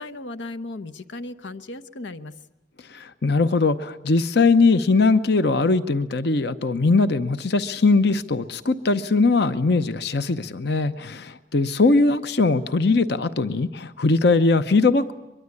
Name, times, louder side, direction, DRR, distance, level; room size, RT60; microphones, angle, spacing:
voice 1, 0.0-2.3, left 2 dB, 90° left, 11 dB, 0.9 m, -36 dB
voice 2, 2.9-15.1, left 3 dB, 65° left, 12 dB, 0.8 m, -20 dB
23.0 x 22.5 x 9.7 m, 0.98 s
head